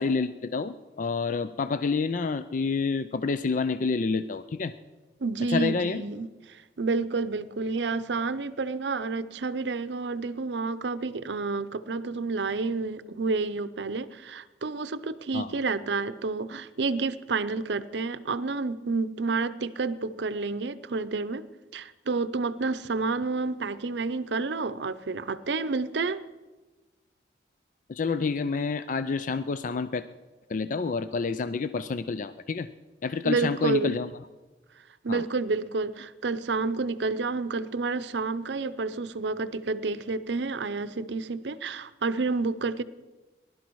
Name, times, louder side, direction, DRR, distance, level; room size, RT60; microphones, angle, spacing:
voice 1, 0.0-4.7 5.5-6.0 15.3-15.5 27.9-30.0 30.5-32.7 33.0-34.1 35.1-35.2, left 4 dB, 45° left, 12 dB, 0.4 m, -28 dB
voice 2, 5.2-21.5 21.7-26.2 33.2-34.0 35.0-42.8, right 3 dB, 80° right, 15 dB, 0.6 m, -29 dB
19.5 x 12.0 x 4.7 m, 1.2 s
head